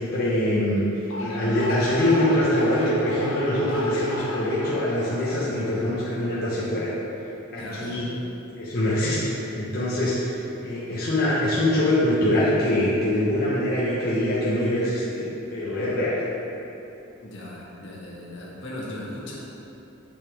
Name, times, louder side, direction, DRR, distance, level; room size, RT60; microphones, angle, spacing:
voice 1, 0.0-6.9 7.5-8.1 8.6-9.2 9.5-16.2, left 1 dB, 50° left, -9 dB, 1.2 m, -24 dB
sound 1, 1.0-6.3, left 1 dB, 85° left, 1.0 m, -35 dB
voice 2, 7.6-8.0 17.2-19.4, left 1 dB, 65° left, -5 dB, 1.6 m, -37 dB
8.2 x 6.7 x 3.6 m, 2.9 s
head